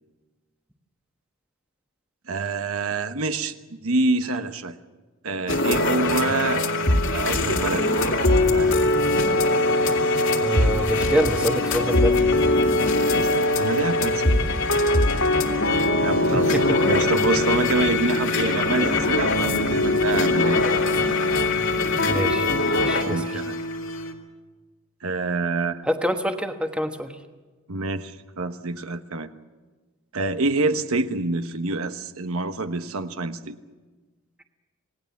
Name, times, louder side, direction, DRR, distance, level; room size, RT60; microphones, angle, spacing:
voice 1, 2.3-3.5 3.8-4.8 5.2-6.6 7.1-7.9 8.4-8.8 13.2-14.3 16.0-20.7 23.0-23.6 25.0-25.8 27.7-29.3 30.1-33.6, right 3 dB, 85° right, 9 dB, 1.2 m, -27 dB
sound 1, 5.5-24.1, left 2 dB, 70° left, 2.5 m, -21 dB
voice 2, 10.4-12.3 16.3-16.8 22.0-22.5 22.7-23.2 25.9-27.1, equal, 5° right, 5 dB, 1.2 m, -26 dB
27.0 x 19.0 x 7.2 m, 1.3 s
head